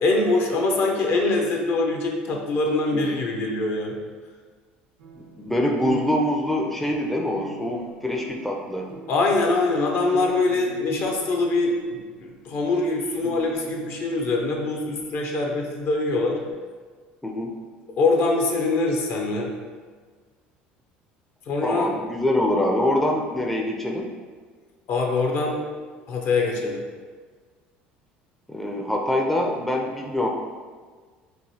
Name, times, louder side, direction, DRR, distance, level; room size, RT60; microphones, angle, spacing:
voice 1, 0.0-4.0 9.1-16.4 18.0-19.5 21.5-21.9 24.9-25.6 26.1-26.8, left 3 dB, 55° left, 1 dB, 0.8 m, -23 dB
sound 1, 5.0-16.5, right 3 dB, 80° right, 0.6 m, -42 dB
voice 2, 5.2-8.9 17.2-17.6 21.6-24.1 28.5-30.3, left 1 dB, 5° left, 1 dB, 0.5 m, -25 dB
4.7 x 2.6 x 2.7 m, 1.5 s
hypercardioid pair, 75°, 5 cm